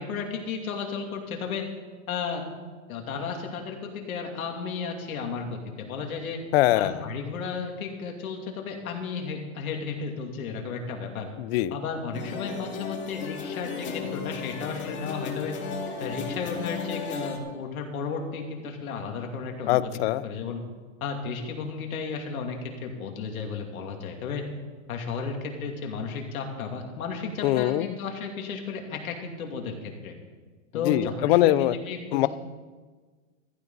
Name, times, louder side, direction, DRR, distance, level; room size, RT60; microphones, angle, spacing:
voice 1, 0.0-1.6 2.1-2.4 2.9-6.4 6.7-11.3 11.7-15.5 16.0-19.9 20.2-20.6 21.0-24.4 24.9-30.1 30.7-32.3, left 5 dB, 85° left, 2 dB, 2.9 m, -33 dB
voice 2, 6.5-7.0 11.4-11.8 19.7-20.2 27.4-28.0 30.8-31.7 32.1-32.3, left 15 dB, 45° left, 16 dB, 0.6 m, -22 dB
sound 1, 12.1-17.4, left 5 dB, 25° left, 2.3 m, -35 dB
15.0 x 15.0 x 4.1 m, 1.4 s
supercardioid pair, 145°, 41 cm